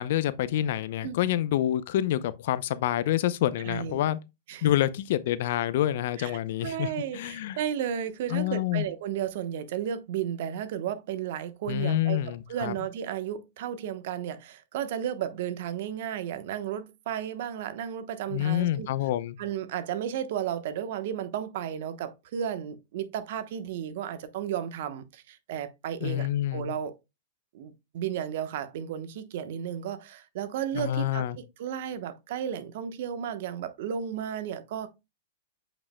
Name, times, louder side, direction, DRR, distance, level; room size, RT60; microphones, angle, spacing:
voice 1, 0.0-4.2 4.6-7.6 8.3-8.8 11.7-12.7 18.3-19.4 26.0-26.7 30.7-31.4, left 12 dB, 60° left, 0.6 m, -27 dB
voice 2, 3.6-4.0 4.5-4.7 6.2-18.9 19.4-26.9 27.5-34.9, right 9 dB, 60° right, 1.0 m, -33 dB
8.5 x 5.2 x 2.2 m
hypercardioid pair, 125°, 0 cm